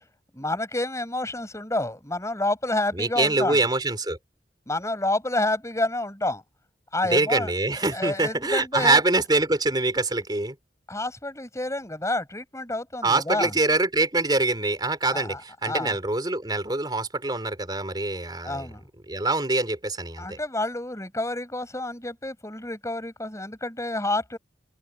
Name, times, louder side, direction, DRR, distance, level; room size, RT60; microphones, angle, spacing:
voice 1, 0.3-3.6 4.7-6.4 6.9-7.5 7.9-9.0 10.9-13.5 15.1-16.0 18.4-18.8 20.2-24.4, left 2 dB, 15° left, 6.4 m, -29 dB
voice 2, 2.9-4.2 7.0-10.6 13.0-18.7 19.1-20.4, right 2 dB, 25° right, 4.2 m, -24 dB
open air
head